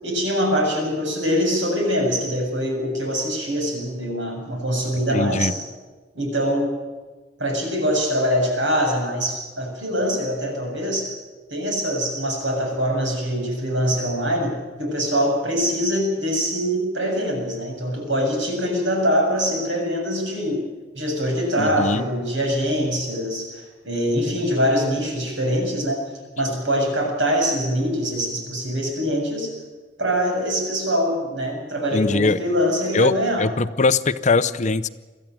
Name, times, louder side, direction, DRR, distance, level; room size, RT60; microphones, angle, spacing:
voice 1, 0.0-5.6 6.2-6.7 7.4-11.1 11.5-20.6 20.9-26.0 26.4-29.5 30.0-33.4, equal, 90° right, 1 dB, 7.2 m, -23 dB
voice 2, 5.1-5.5 21.6-22.0 31.9-32.4 32.9-34.9, left 3 dB, 40° left, 14 dB, 0.7 m, -21 dB
23.0 x 14.5 x 9.1 m, 1.3 s
head